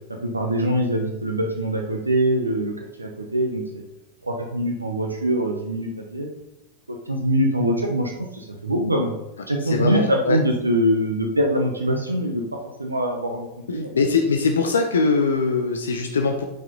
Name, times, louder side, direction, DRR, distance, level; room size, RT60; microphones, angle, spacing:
voice 1, 0.1-3.8 4.2-6.3 6.9-9.1 9.5-13.9, right 1 dB, 90° right, 2 dB, 1.0 m, -24 dB
voice 2, 9.7-10.4 13.7-16.4, left 4 dB, 75° left, 5 dB, 0.8 m, -22 dB
8.9 x 6.0 x 4.0 m, 0.93 s
figure-of-eight pair, 90°, 0 cm